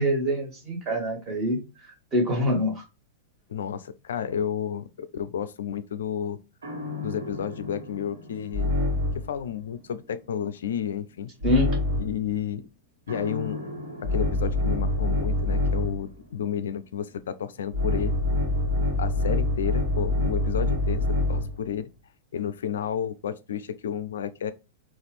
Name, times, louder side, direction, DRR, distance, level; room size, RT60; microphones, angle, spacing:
voice 1, 0.0-2.8 11.4-11.7, equal, 30° right, 1.7 m, -25 dB
voice 2, 3.5-6.4 7.0-8.7 9.2-11.3 12.0-12.7 13.1-13.7 14.1-18.2 19.0-21.9 22.3-24.5, left 8 dB, 70° left, 0.3 m, -31 dB
sound 1, 6.6-9.4 11.4-12.2 13.1-16.1 17.7-21.6, left 1 dB, 75° right, 1.2 m, -26 dB
4.0 x 2.4 x 3.2 m
figure-of-eight pair, 95°, 0 cm